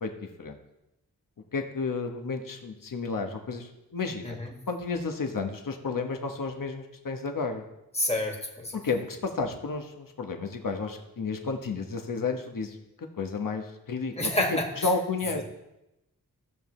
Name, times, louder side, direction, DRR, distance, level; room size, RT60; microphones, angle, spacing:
voice 1, 1.5-4.4 4.7-7.6 8.7-12.8 13.2-15.4, left 4 dB, 65° left, 4 dB, 1.2 m, -32 dB
voice 2, 8.0-8.8 14.2-14.7, left 1 dB, 20° left, 1 dB, 1.9 m, -28 dB
15.5 x 7.2 x 3.2 m, 0.90 s
wide cardioid pair, 90°, 35 cm